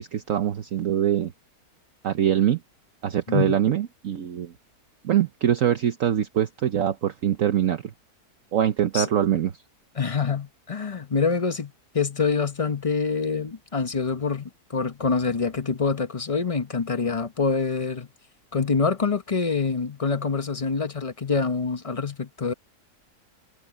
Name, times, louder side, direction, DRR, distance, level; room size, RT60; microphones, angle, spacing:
voice 1, 0.0-1.3 2.0-2.6 3.0-4.5 5.0-7.9 8.5-9.5, right 10 dB, 60° right, 1.2 m, -23 dB
voice 2, 10.0-18.1 18.5-22.5, left 5 dB, 25° left, 0.8 m, -26 dB
omnidirectional pair, 1.7 m